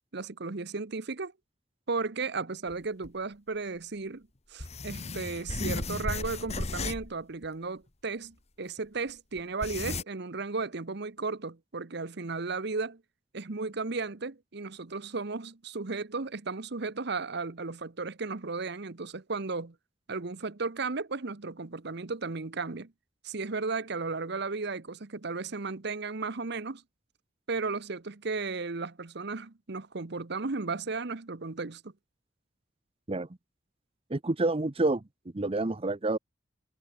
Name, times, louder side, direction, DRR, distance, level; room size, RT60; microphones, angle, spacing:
voice 1, 0.1-1.3 1.9-13.0 13.3-19.7 20.1-22.9 23.2-26.8 27.5-31.9, right 4 dB, 60° right, 1.0 m, -35 dB
sound 1, 2.7-2.8 3.0-3.1 4.6-7.1 7.4-7.5 8.8-8.9 9.4-10.0, left 3 dB, 35° left, 1.3 m, -34 dB
voice 2, 34.1-35.0 35.3-36.2, right 2 dB, 30° right, 0.8 m, -28 dB
head